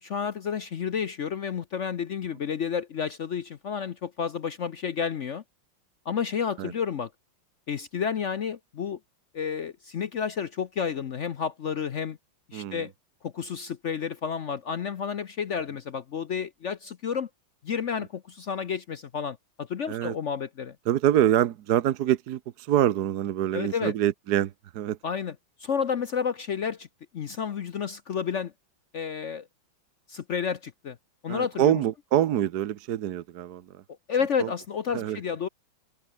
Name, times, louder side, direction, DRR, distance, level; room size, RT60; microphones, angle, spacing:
voice 1, 0.0-5.4 6.1-7.1 7.7-9.0 9.3-12.2 12.5-12.9 13.2-17.3 17.6-20.8 23.5-23.9 25.0-26.9 27.1-28.5 28.9-29.5 30.1-31.0 31.2-31.8 34.1-35.5, left 7 dB, 60° left, 0.8 m, -31 dB
voice 2, 20.9-25.0 31.3-33.6 34.4-34.5 34.9-35.2, right 11 dB, 60° right, 1.2 m, -25 dB
open air
omnidirectional pair, 2.1 m